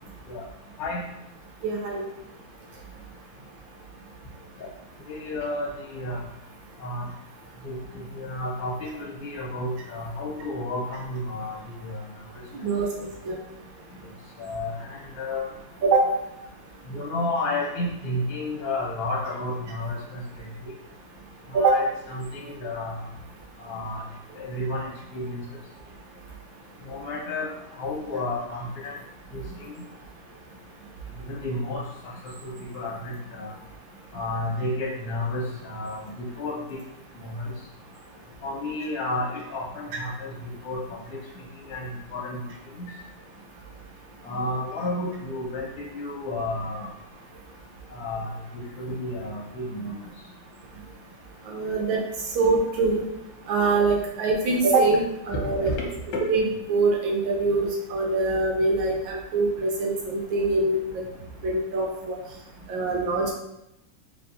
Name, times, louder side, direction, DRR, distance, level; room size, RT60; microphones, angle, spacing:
voice 1, 1.6-2.0 12.6-13.4 15.8-16.1 21.5-21.8 51.5-52.0 52.3-53.0 53.5-55.7 56.3-56.4 56.7-61.0 61.4-62.2 62.7-63.3, right 3 dB, 70° right, -1 dB, 1.3 m, -23 dB
voice 2, 5.1-6.2 6.8-7.0 7.6-7.8 8.1-11.6 11.8-12.0 14.4-15.5 16.9-20.7 21.5-23.0 23.6-24.0 24.4-25.4 26.9-27.5 27.8-29.0 29.3-29.7 31.2-31.8 32.4-33.5 34.1-36.8 37.2-37.5 38.4-40.3 40.6-40.8 41.7-42.4 42.8-42.9 44.2-46.9 47.9-50.0 55.4-55.8, left 2 dB, 65° left, -3 dB, 1.4 m, -31 dB
4.6 x 3.5 x 2.6 m, 0.88 s
omnidirectional pair, 2.3 m